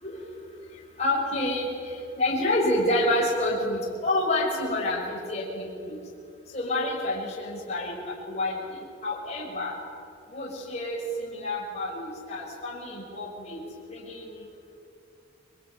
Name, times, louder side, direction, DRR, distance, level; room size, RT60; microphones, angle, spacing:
voice 1, 1.0-6.0 6.5-9.8 10.3-14.4, left 1 dB, 35° left, -3 dB, 5.9 m, -29 dB
27.0 x 23.5 x 9.4 m, 2.6 s
head